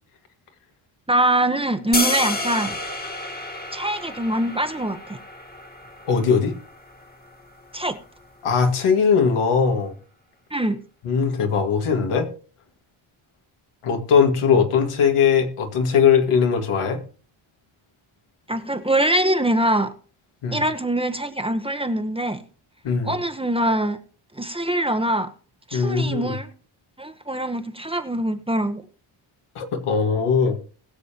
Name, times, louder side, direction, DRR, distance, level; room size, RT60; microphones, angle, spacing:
voice 1, 1.1-2.7 3.7-5.2 7.7-8.0 10.5-10.8 18.5-19.9 20.5-22.5 23.0-24.0 24.3-25.3 25.7-26.5 27.0-28.8, right 1 dB, 10° right, 1.0 m, -23 dB
sound 1, 1.9-8.0, left 2 dB, 20° left, 1.6 m, -31 dB
voice 2, 6.1-6.5 8.4-9.9 11.0-12.3 13.8-17.0 20.4-20.7 22.8-23.2 25.7-26.4 29.6-30.6, left 6 dB, 90° left, 2.2 m, -20 dB
20.5 x 7.1 x 2.9 m
wide cardioid pair, 125°, 50 cm